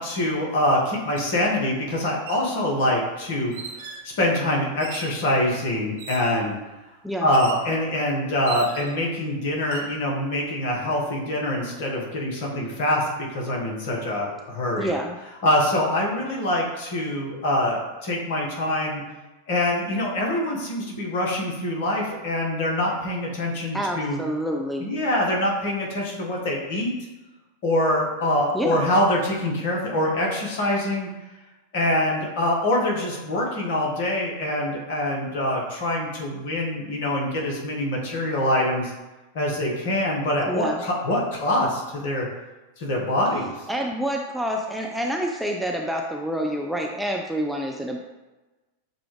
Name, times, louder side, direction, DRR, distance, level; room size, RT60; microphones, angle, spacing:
voice 1, 0.0-3.5 4.2-6.6 7.2-14.9 15.4-19.0 19.5-24.2 24.8-26.9 27.6-31.1 31.7-38.9 39.3-42.3 42.8-43.5, left 1 dB, 50° left, -1 dB, 1.2 m, -24 dB
sound 1, 1.2-1.3 2.1-2.5 3.5-4.1 4.8-5.2 6.0-6.4 7.3-7.7 8.5-9.0 9.6-9.9, right 5 dB, 55° right, 0.7 m, -38 dB
voice 2, 14.8-15.2 23.7-24.9 28.5-28.8 40.5-40.8 43.7-48.0, equal, ahead, 0 dB, 0.4 m, -27 dB
6.7 x 2.4 x 3.2 m, 1.1 s
figure-of-eight pair, 90°, 0 cm